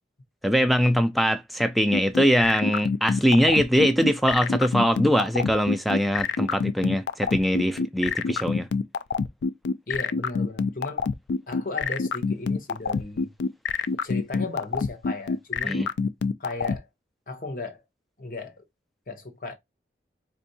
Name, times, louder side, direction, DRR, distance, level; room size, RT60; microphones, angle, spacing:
voice 1, 0.4-8.7 15.6-15.9, equal, ahead, 0.3 m, -22 dB
sound 1, 1.9-16.8, left 5 dB, 85° left, 0.4 m, -25 dB
voice 2, 9.9-11.1 11.5-13.3 14.0-15.8 16.4-16.9 17.3-17.8 18.2-18.6 19.1-19.5, left 2 dB, 50° left, 0.9 m, -35 dB
4.4 x 2.6 x 2.7 m
head